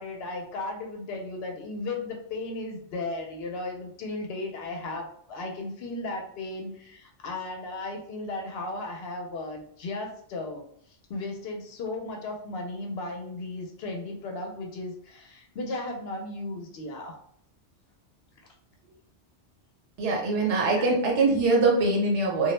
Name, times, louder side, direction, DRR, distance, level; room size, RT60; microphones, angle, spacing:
voice 1, 0.0-10.6 11.1-17.2, left 2 dB, 65° left, 2 dB, 0.7 m, -35 dB
voice 2, 20.0-22.5, right 3 dB, 80° right, -1 dB, 1.1 m, -23 dB
2.2 x 2.0 x 3.0 m, 0.63 s
omnidirectional pair, 1.2 m